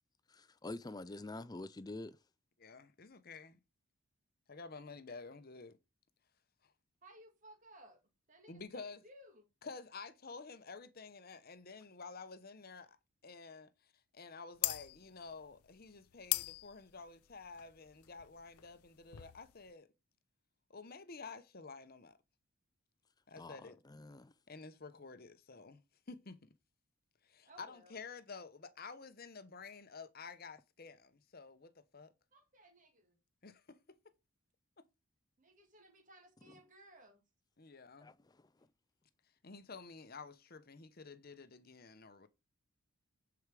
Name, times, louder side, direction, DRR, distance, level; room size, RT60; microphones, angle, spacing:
voice 1, 0.3-2.2 23.4-24.3 36.5-36.6 38.0-38.4, left 2 dB, 15° left, 0.4 m, -47 dB
voice 2, 2.6-3.6 4.5-5.8 6.6-6.7 8.5-9.0 9.6-13.0 13.2-19.9 20.7-22.2 23.3-23.8 24.5-25.8 26.1-26.5 27.2-32.1 33.4-33.8 34.8-34.9 37.6-38.1 39.4-42.3, left 4 dB, 45° left, 0.8 m, -51 dB
voice 3, 7.0-8.0 8.3-9.4 27.5-28.0 32.3-33.2 35.4-37.2, right 1 dB, 35° right, 2.2 m, -60 dB
sound 1, 14.6-19.7, left 19 dB, 90° left, 0.5 m, -41 dB
10.0 x 4.8 x 4.8 m
head